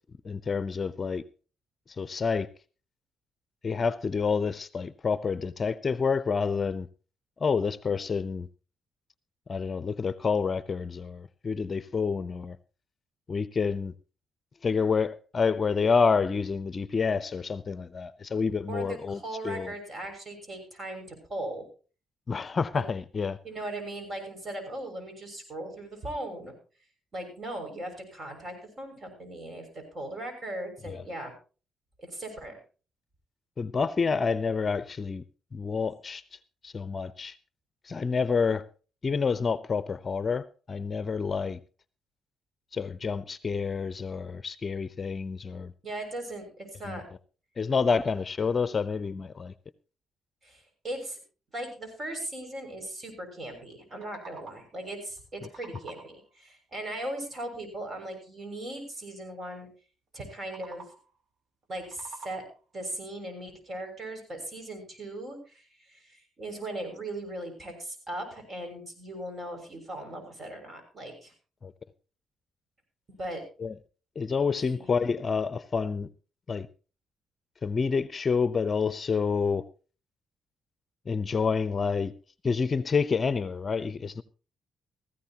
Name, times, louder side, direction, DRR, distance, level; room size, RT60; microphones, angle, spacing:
voice 1, 0.2-1.2 2.0-2.5 3.6-6.9 7.4-8.5 9.5-12.6 13.3-13.9 14.6-19.7 22.3-23.4 30.8-31.0 33.6-35.2 35.5-36.4 36.6-37.3 37.8-38.6 39.0-41.6 42.7-45.7 46.8-47.0 47.6-49.5 71.6-71.7 73.6-73.7 74.2-76.1 76.5-76.7 77.6-79.6 81.1-82.1 82.4-84.2, left 5 dB, 35° left, 0.7 m, -28 dB
voice 2, 18.7-21.6 23.4-26.5 27.1-31.3 32.0-32.6 45.8-47.0 50.4-51.2 51.5-59.7 60.1-60.8 61.7-62.4 62.7-71.3 73.2-73.4 74.6-74.9, right 1 dB, 40° right, 6.5 m, -38 dB
sound 1, 53.7-54.8 55.2-56.3 60.3-61.2 61.6-62.7, right 4 dB, 60° right, 2.9 m, -49 dB
17.0 x 15.0 x 2.9 m
cardioid pair, 90°, 0 cm